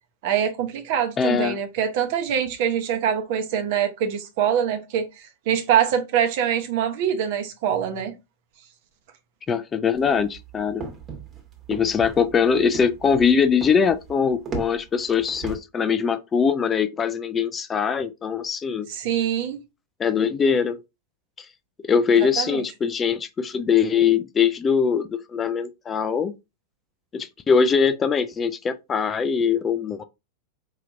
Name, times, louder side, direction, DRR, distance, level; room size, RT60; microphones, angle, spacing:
voice 1, 0.2-8.1 18.9-19.6 22.4-22.6, right 9 dB, 50° right, 0.8 m, -24 dB
voice 2, 1.2-1.6 9.5-10.8 11.7-18.9 20.0-20.8 21.4-21.5 21.8-26.3 27.1-30.0, left 6 dB, 20° left, 0.3 m, -22 dB
sound 1, 9.9-15.6, right 4 dB, 25° right, 1.2 m, -36 dB
4.8 x 2.9 x 2.5 m
figure-of-eight pair, 90°, 0 cm